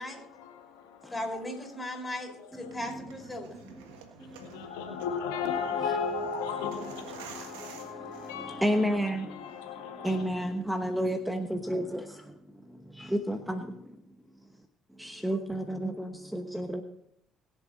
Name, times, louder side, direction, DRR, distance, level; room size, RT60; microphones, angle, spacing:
voice 1, 0.0-1.4 1.7-1.8 4.4-10.2, left 6 dB, 85° left, 3 dB, 1.7 m, -36 dB
voice 2, 1.1-3.6, left 1 dB, 20° left, 1 dB, 4.9 m, -37 dB
sound 1, 2.6-8.8, right 5 dB, 85° right, 1.5 m, -50 dB
voice 3, 8.6-9.2 10.0-11.8 13.3-13.6 15.2-16.8, equal, 5° right, 8 dB, 1.1 m, -29 dB
21.5 x 7.4 x 4.2 m, 0.76 s
hypercardioid pair, 55°, 0 cm